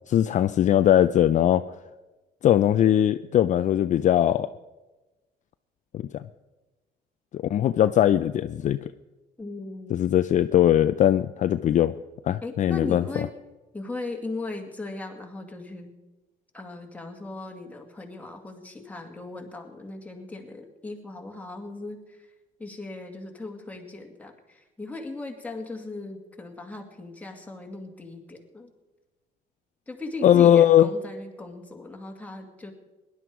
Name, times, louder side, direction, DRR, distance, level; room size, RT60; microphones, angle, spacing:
voice 1, 0.1-1.6 2.4-4.5 5.9-6.2 7.3-8.8 9.9-11.9 12.2-13.0 30.2-30.9, left 11 dB, 45° left, 11 dB, 0.4 m, -20 dB
voice 2, 9.4-10.0 12.4-13.3 13.7-15.9 16.5-22.3 22.6-28.7 29.9-32.7, left 2 dB, 10° left, 2 dB, 2.1 m, -38 dB
18.5 x 11.0 x 4.7 m, 1.1 s
cardioid pair, 110°, 17 cm